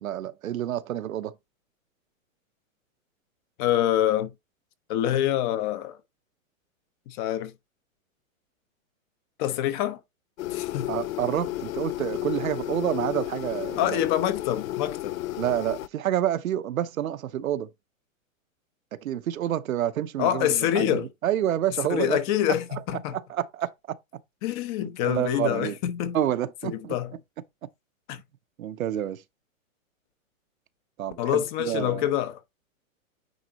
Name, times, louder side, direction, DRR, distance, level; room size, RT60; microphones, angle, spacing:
voice 1, 0.0-1.3 10.9-14.0 15.4-17.7 19.0-22.2 23.1-24.0 25.0-25.8 26.1-26.9 28.6-29.2 31.0-32.0, right 11 dB, 80° right, 0.9 m, -28 dB
voice 2, 3.6-4.3 4.9-6.0 7.1-7.5 9.4-10.0 10.5-10.9 13.8-15.2 20.2-21.1 21.9-23.1 24.4-26.2 26.6-27.1 28.1-28.2 31.2-32.4, left 11 dB, 35° left, 1.0 m, -26 dB
sound 1, 10.4-15.9, left 15 dB, 80° left, 0.5 m, -32 dB
9.4 x 4.0 x 2.9 m
hypercardioid pair, 140°, 41 cm